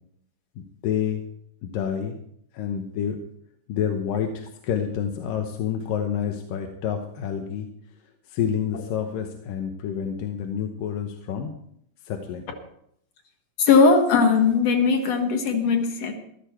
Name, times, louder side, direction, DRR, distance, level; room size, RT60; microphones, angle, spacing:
voice 1, 0.8-1.2 1.6-2.2 2.5-3.2 3.7-7.7 8.3-11.5 12.0-12.4, left 8 dB, 80° left, 4 dB, 2.7 m, -28 dB
voice 2, 13.6-16.1, left 5 dB, 55° left, 5 dB, 2.5 m, -19 dB
15.0 x 13.0 x 4.4 m, 0.71 s
omnidirectional pair, 3.9 m